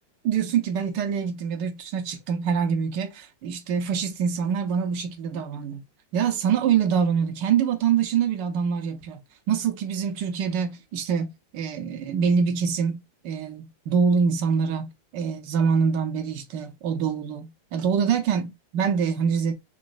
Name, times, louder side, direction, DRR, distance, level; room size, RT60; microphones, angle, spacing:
voice 1, 0.2-5.8 6.1-9.2 9.5-19.5, right 6 dB, 75° right, 1.2 m, -25 dB
4.0 x 3.0 x 2.3 m
omnidirectional pair, 2.0 m